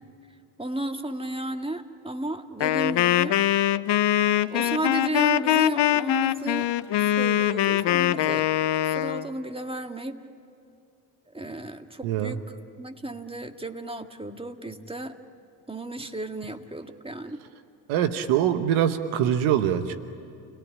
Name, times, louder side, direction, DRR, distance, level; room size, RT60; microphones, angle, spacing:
voice 1, 0.6-3.4 4.5-6.7 7.0-8.5 8.7-10.2 11.3-12.4 12.8-15.2 15.7-17.4, right 1 dB, 10° right, 6 dB, 1.9 m, -33 dB
Wind instrument woodwind instrument, 2.6-9.3, left 12 dB, 55° left, 0.9 m, -23 dB
voice 2, 12.0-12.4 17.9-20.0, right 10 dB, 75° right, 10 dB, 1.2 m, -24 dB
29.5 x 18.5 x 9.9 m, 2.4 s
hypercardioid pair, 50°, 49 cm